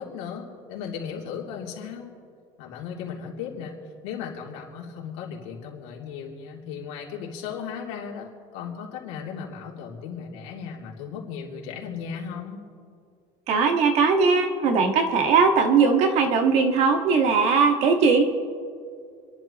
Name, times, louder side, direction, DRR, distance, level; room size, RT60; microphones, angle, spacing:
voice 1, 0.0-2.1 2.6-3.8 4.0-12.6, left 7 dB, 90° left, -2 dB, 2.9 m, -36 dB
voice 2, 13.5-18.2, right 5 dB, 50° right, 5 dB, 1.6 m, -19 dB
29.0 x 11.5 x 3.0 m, 2.3 s
cardioid pair, 165°, 14 cm